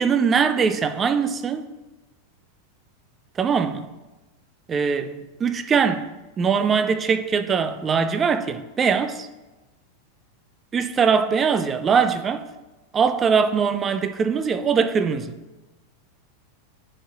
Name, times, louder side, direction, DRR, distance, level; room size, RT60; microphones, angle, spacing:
voice 1, 0.0-1.7 3.4-3.7 4.7-6.1 6.4-9.3 10.7-12.5 12.9-15.4, right 6 dB, 20° right, 0.4 m, -21 dB
9.8 x 4.5 x 2.4 m
figure-of-eight pair, 90°, 0 cm